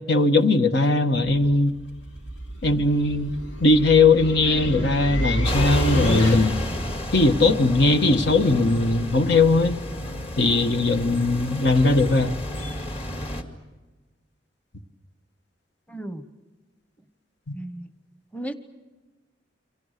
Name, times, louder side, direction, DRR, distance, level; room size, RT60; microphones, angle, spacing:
voice 1, 0.1-1.7 2.6-3.3 3.6-6.5 7.1-9.8 10.4-12.4 17.5-17.6, left 3 dB, 65° left, 8 dB, 1.5 m, -19 dB
sound 1, 1.2-6.8, equal, 90° left, 2.9 m, -29 dB
sound 2, 5.4-13.4, equal, 35° left, 2.3 m, -31 dB
voice 2, 15.9-16.2 17.5-17.9 18.3-18.5, right 1 dB, 10° left, 10 dB, 1.1 m, -34 dB
29.0 x 25.0 x 6.8 m, 1.2 s
head